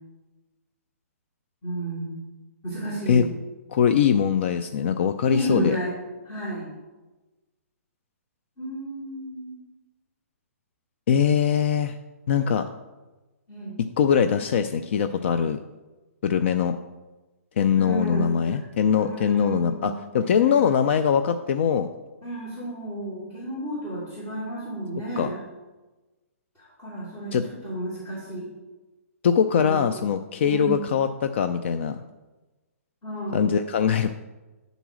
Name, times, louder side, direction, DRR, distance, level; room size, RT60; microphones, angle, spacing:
voice 1, 1.6-2.2 2.6-3.3 5.3-5.9 6.2-6.7 8.6-9.6 13.5-13.8 17.8-18.6 19.0-20.0 20.4-20.7 22.2-25.4 26.6-27.4 27.6-28.5 29.5-29.8 30.4-30.9 33.0-33.5, right 1 dB, 20° left, -9 dB, 2.7 m, -32 dB
voice 2, 3.7-5.8 11.1-12.0 12.3-12.6 13.8-15.6 16.2-16.8 17.6-21.9 25.2-25.3 27.3-27.4 29.2-32.0 33.3-34.1, left 7 dB, 50° left, 9 dB, 0.4 m, -22 dB
10.5 x 4.0 x 6.2 m, 1.2 s
hypercardioid pair, 160°, 8 cm